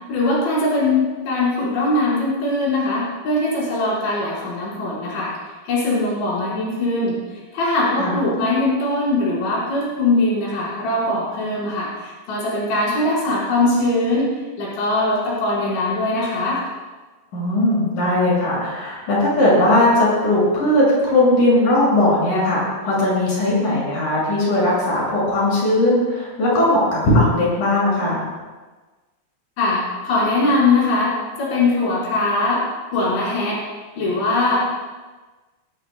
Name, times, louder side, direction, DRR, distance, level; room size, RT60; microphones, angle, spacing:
voice 1, 0.1-5.3 5.6-7.2 7.5-14.3 14.6-16.6 29.6-32.6 32.9-33.6 34.0-34.7, left 2 dB, 90° left, -7 dB, 7.1 m, -21 dB
voice 2, 17.3-28.3, left 1 dB, 50° left, -6 dB, 7.8 m, -18 dB
21.0 x 19.5 x 2.3 m, 1.3 s
omnidirectional pair, 5.0 m